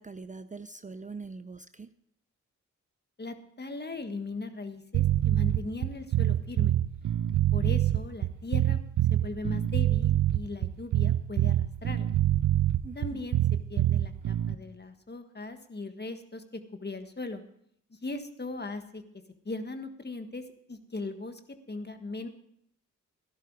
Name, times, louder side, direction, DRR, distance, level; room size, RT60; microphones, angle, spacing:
voice 1, 0.0-1.9 12.8-13.2, right 4 dB, 25° right, 12 dB, 0.5 m, -43 dB
voice 2, 3.2-6.7 7.5-8.8 9.1-12.1 12.9-13.4 13.7-17.4 18.0-19.0 19.4-20.4 20.7-21.4 21.7-22.3, left 3 dB, 30° left, 8 dB, 1.6 m, -38 dB
sound 1, 4.9-14.6, right 12 dB, 70° right, 0.6 m, -25 dB
13.0 x 11.5 x 4.7 m, 0.70 s
supercardioid pair, 45°, 32 cm